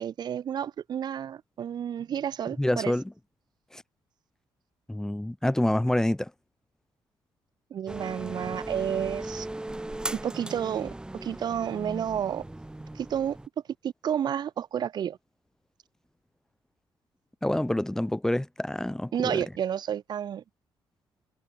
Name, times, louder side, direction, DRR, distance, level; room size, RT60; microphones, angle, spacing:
voice 1, 0.0-2.9 7.7-9.5 10.1-10.9 11.2-12.4 13.0-13.4 13.8-15.2 19.1-20.4, right 9 dB, 55° right, 2.4 m, -30 dB
voice 2, 2.6-3.0 3.7-3.8 4.9-6.3 17.4-19.4, left 1 dB, 5° left, 1.9 m, -27 dB
sound 1, 7.9-13.5, right 1 dB, 10° right, 7.4 m, -38 dB
cardioid pair, 125°, 9 cm